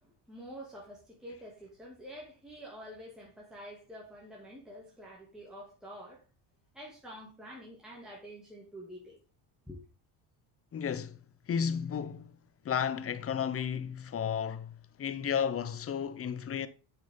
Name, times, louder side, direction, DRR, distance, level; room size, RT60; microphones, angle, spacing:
voice 1, 0.0-6.2 6.7-9.2 9.7-9.8, equal, ahead, 2.5 m, -48 dB
voice 2, 10.7-11.2 11.5-12.3 12.6-16.7, left 7 dB, 30° left, 0.8 m, -33 dB
8.3 x 6.4 x 3.8 m
cardioid pair, 110°, 50 cm